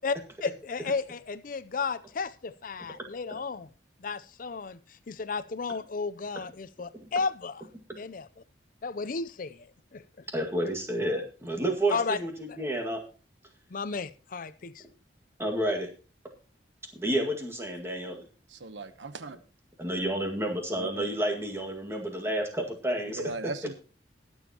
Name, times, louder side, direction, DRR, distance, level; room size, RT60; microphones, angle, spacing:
voice 1, 0.4-3.7 4.0-7.7 8.0-8.4 8.8-10.2 11.9-12.2 12.5-12.6 13.7-14.8, left 4 dB, 50° left, 14 dB, 0.5 m, -33 dB
voice 2, 10.3-13.0 15.4-15.9 16.9-18.3 19.8-23.2, right 1 dB, 15° right, 2 dB, 2.0 m, -30 dB
voice 3, 18.5-19.4 20.8-21.0 23.1-23.7, right 3 dB, 85° right, 12 dB, 1.0 m, -38 dB
21.5 x 7.1 x 2.9 m, 0.36 s
head